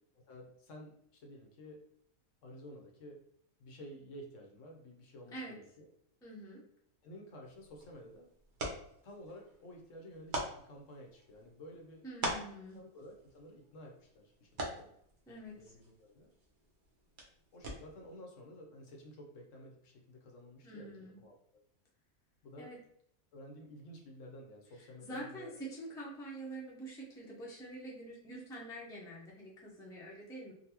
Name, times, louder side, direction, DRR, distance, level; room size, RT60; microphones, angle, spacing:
voice 1, 0.3-1.8 2.4-3.2 3.6-5.9 7.0-8.3 9.0-12.1 12.7-14.9 15.6-16.3 17.5-21.6 22.4-22.7 23.3-25.6, equal, 70° left, 1 dB, 1.0 m, -52 dB
voice 2, 6.2-6.6 12.0-12.8 15.3-15.7 20.6-21.2 22.6-22.8 24.8-30.5, right 1 dB, 5° left, -4 dB, 0.5 m, -46 dB
sound 1, 7.4-18.1, right 1 dB, 45° right, 0.7 m, -45 dB
3.9 x 2.2 x 2.8 m, 0.70 s
omnidirectional pair, 1.5 m